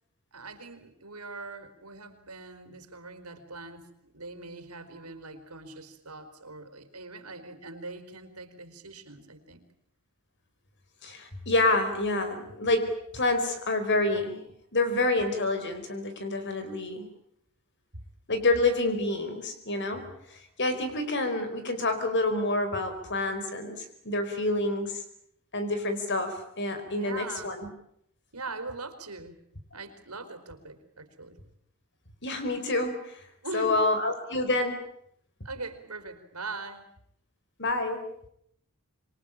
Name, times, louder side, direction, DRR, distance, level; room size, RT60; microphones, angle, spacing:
voice 1, 0.3-9.6 26.8-27.6 28.3-29.4 29.7-31.4 33.4-34.0 35.4-36.9, right 3 dB, 90° right, 8 dB, 4.4 m, -41 dB
voice 2, 11.0-14.4 14.7-17.1 18.3-25.0 25.5-27.7 32.2-33.2 33.5-34.8 37.6-38.0, left 2 dB, 55° left, 9 dB, 4.8 m, -28 dB
26.5 x 23.0 x 8.9 m, 0.72 s
head